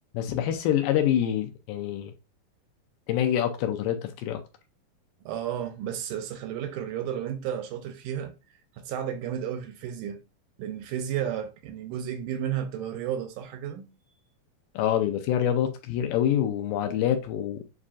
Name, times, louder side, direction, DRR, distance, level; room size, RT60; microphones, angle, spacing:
voice 1, 0.1-2.1 3.1-4.4 14.8-17.6, left 10 dB, 80° left, 2.1 m, -26 dB
voice 2, 5.3-8.4 8.8-10.2 10.6-13.9, right 9 dB, 80° right, 1.9 m, -32 dB
7.3 x 2.5 x 2.4 m
omnidirectional pair, 4.2 m